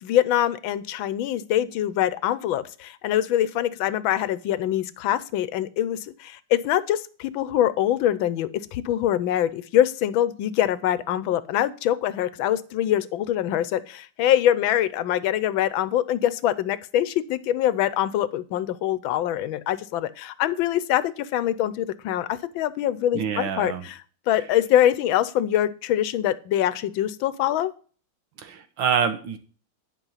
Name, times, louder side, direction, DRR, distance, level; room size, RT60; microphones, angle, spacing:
voice 1, 0.0-27.7, left 11 dB, 90° left, 16 dB, 1.5 m, -24 dB
voice 2, 23.1-23.8 28.4-29.4, right 7 dB, 75° right, 9 dB, 1.9 m, -26 dB
10.5 x 5.3 x 5.7 m, 0.40 s
omnidirectional pair, 2.1 m